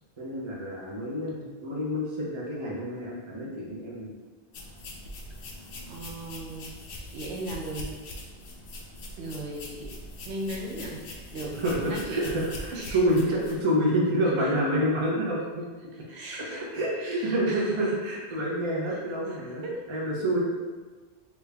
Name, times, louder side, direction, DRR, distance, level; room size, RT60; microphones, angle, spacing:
voice 1, 0.2-4.1 11.5-15.7 16.3-20.4, equal, 35° right, -4 dB, 0.6 m, -28 dB
sound 1, 4.5-13.5, left 1 dB, 80° left, 0.8 m, -42 dB
voice 2, 5.8-6.7 7.1-7.9 9.2-9.9 10.3-11.6 11.8-13.0 16.1-16.7 17.0-17.7 19.6-19.8, right 1 dB, 90° right, -2 dB, 0.9 m, -37 dB
3.2 x 2.4 x 3.3 m, 1.4 s
omnidirectional pair, 1.1 m